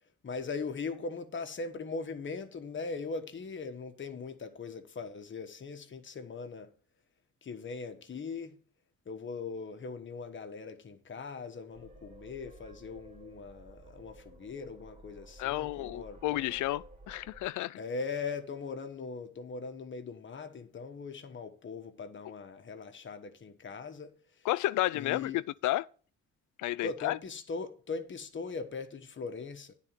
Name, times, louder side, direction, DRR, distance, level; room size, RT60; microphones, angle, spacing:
voice 1, 0.2-6.7 7.4-8.6 9.0-16.5 17.8-24.1 24.4-24.5 24.9-25.4 26.8-29.7, left 4 dB, 40° left, 1.3 m, -40 dB
sound 1, 11.7-17.5, right 1 dB, 25° right, 2.1 m, -53 dB
voice 2, 15.4-17.8 24.4-25.9 26.6-27.2, left 16 dB, 75° left, 0.5 m, -32 dB
9.7 x 4.2 x 7.5 m
cardioid pair, 90°, 30 cm